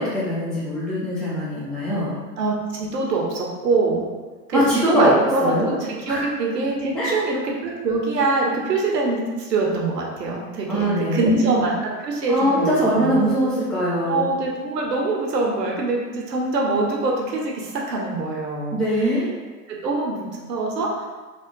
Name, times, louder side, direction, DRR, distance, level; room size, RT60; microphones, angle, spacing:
voice 1, 0.0-2.1 4.5-5.1 5.4-5.8 6.1-6.3 6.9-7.2 10.7-11.5 12.3-14.2 18.7-19.3, equal, ahead, -8 dB, 0.5 m, -22 dB
voice 2, 2.4-4.1 4.5-13.2 14.1-18.8 19.7-21.0, right 3 dB, 85° right, -1 dB, 1.0 m, -24 dB
3.5 x 2.4 x 3.8 m, 1.3 s
hypercardioid pair, 110°, 48 cm